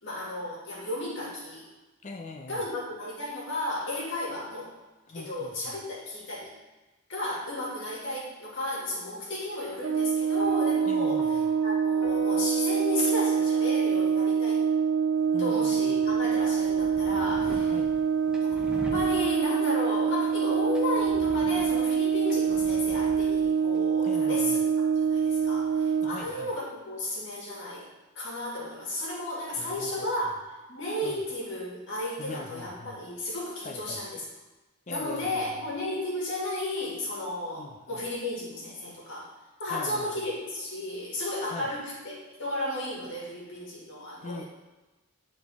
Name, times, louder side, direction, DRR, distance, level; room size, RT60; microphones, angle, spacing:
voice 1, 0.0-1.7 2.5-4.7 5.1-6.5 7.1-11.2 11.6-14.6 15.4-17.7 18.4-24.6 25.0-27.9 28.2-30.3 30.7-34.2 34.9-39.3 39.6-44.4, left 1 dB, 55° left, -5 dB, 2.1 m, -33 dB
voice 2, 2.0-2.7 5.1-5.8 10.8-11.5 15.3-16.1 17.6-17.9 24.0-24.6 26.0-26.5 29.6-30.3 31.0-31.2 32.2-33.1 33.6-34.1 34.9-35.5 37.6-38.0 39.7-40.3 41.4-41.7 44.2-44.4, left 3 dB, 35° left, 2 dB, 0.5 m, -42 dB
Brass instrument, 9.8-26.2, right 6 dB, 55° right, 0.3 m, -25 dB
sound 1, 10.4-14.8, left 1 dB, 80° left, 0.8 m, -41 dB
sound 2, 15.2-26.2, equal, 5° right, 0.7 m, -46 dB
9.3 x 4.0 x 3.5 m, 1.1 s
head